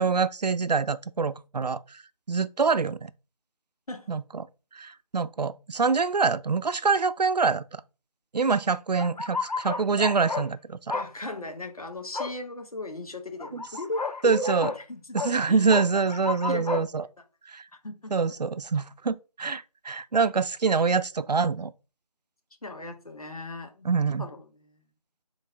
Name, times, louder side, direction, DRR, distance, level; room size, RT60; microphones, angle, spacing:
voice 1, 0.0-1.8 2.3-3.1 4.1-4.5 4.7-7.8 8.3-11.0 14.2-14.7 15.1-17.0 17.5-17.6 18.1-21.7 23.8-24.3, right 5 dB, 85° right, 0.4 m, -25 dB
voice 2, 3.9-4.2 10.9-15.7 16.5-16.9 17.7-18.1 22.6-24.7, left 2 dB, 65° left, 1.0 m, -37 dB
sound 1, 9.0-10.5 10.9-11.1 12.1-12.3 13.4-14.8 15.2-15.4 15.7-16.8, left 4 dB, 80° left, 0.6 m, -32 dB
3.8 x 2.5 x 4.7 m
figure-of-eight pair, 170°, 20 cm